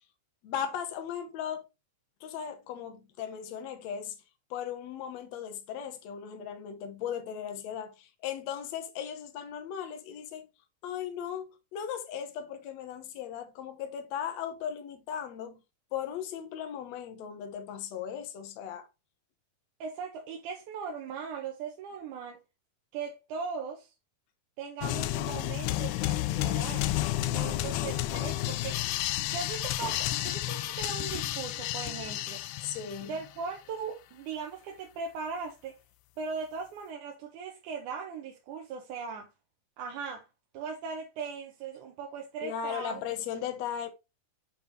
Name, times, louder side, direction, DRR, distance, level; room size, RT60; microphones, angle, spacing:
voice 1, 0.4-1.7 2.2-4.1 4.5-10.5 10.8-15.6 15.9-18.9 32.6-33.1 42.4-43.9, left 8 dB, 65° left, 2.1 m, -37 dB
voice 2, 19.8-22.4 22.9-23.9 24.6-26.9 27.3-28.8 29.3-32.4 33.0-35.8 36.2-39.3 39.8-40.3 40.5-43.0, right 5 dB, 75° right, 2.3 m, -39 dB
sound 1, 24.8-33.3, left 15 dB, 85° left, 1.7 m, -31 dB
7.2 x 3.9 x 4.0 m
omnidirectional pair, 3.8 m